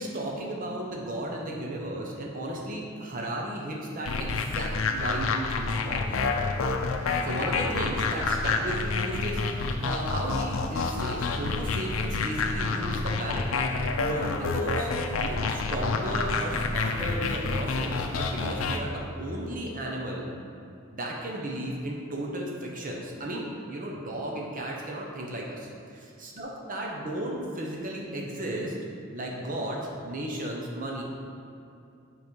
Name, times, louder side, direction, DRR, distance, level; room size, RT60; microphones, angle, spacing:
voice 1, 0.0-6.0 7.2-13.4 14.0-14.9 15.2-20.3 20.9-28.7 29.1-31.0, right 1 dB, 40° right, -1 dB, 0.8 m, -34 dB
sound 1, 4.1-18.8, left 4 dB, 80° left, 0.5 m, -28 dB
8.1 x 3.3 x 5.2 m, 2.6 s
head